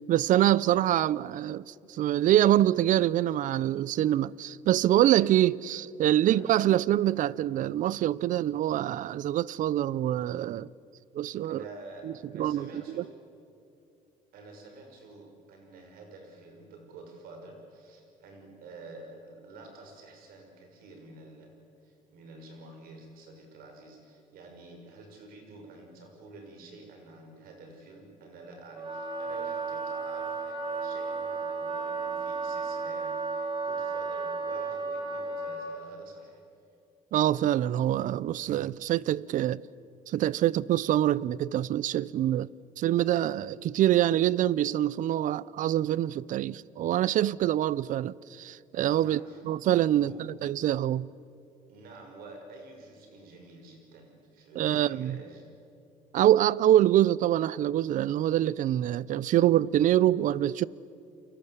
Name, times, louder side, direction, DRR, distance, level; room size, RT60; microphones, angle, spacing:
voice 1, 0.1-10.7 11.1-11.6 12.3-13.0 37.1-39.6 40.1-42.5 42.8-49.2 49.5-51.1 54.6-55.2 56.1-60.7, right 12 dB, 60° right, 0.6 m, -25 dB
voice 2, 6.2-6.5 11.4-13.1 14.3-36.4 48.9-49.4 49.9-50.2 51.7-55.5, right 2 dB, 80° right, 6.4 m, -49 dB
Wind instrument woodwind instrument, 28.7-35.8, right 4 dB, 30° right, 4.1 m, -33 dB
29.5 x 22.5 x 8.2 m
cardioid pair, 105°, 15 cm